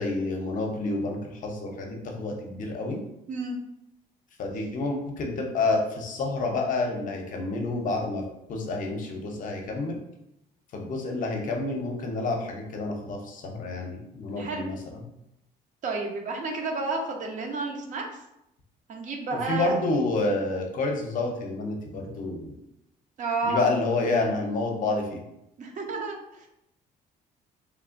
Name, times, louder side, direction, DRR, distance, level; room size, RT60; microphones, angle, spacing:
voice 1, 0.0-3.0 4.4-8.2 8.5-9.9 10.7-14.7 19.5-22.6 23.4-25.2, left 2 dB, 50° left, 2 dB, 0.6 m, -29 dB
voice 2, 15.8-18.2 18.9-19.9 23.2-23.7 25.6-26.5, right 3 dB, 45° right, 2 dB, 0.6 m, -31 dB
3.1 x 2.1 x 2.4 m, 0.83 s
cardioid pair, 110°, 17 cm